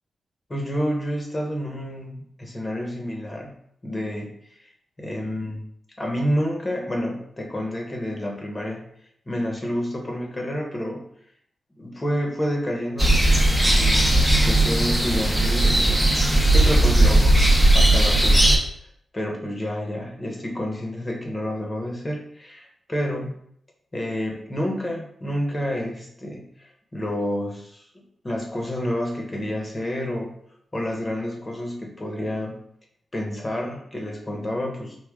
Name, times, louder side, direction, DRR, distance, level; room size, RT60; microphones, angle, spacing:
voice 1, 0.5-3.5 3.8-4.3 4.6-4.7 5.0-5.6 6.0-8.8 9.3-11.1 11.8-17.4 17.7-18.6 19.1-23.3 23.9-30.3 30.7-32.6 33.1-35.0, equal, 30° left, 1 dB, 0.9 m, -29 dB
sound 1, 13.0-18.6, right 1 dB, 5° right, 0.8 m, -17 dB
3.4 x 2.3 x 3.6 m, 0.68 s
cardioid pair, 55°, 0 cm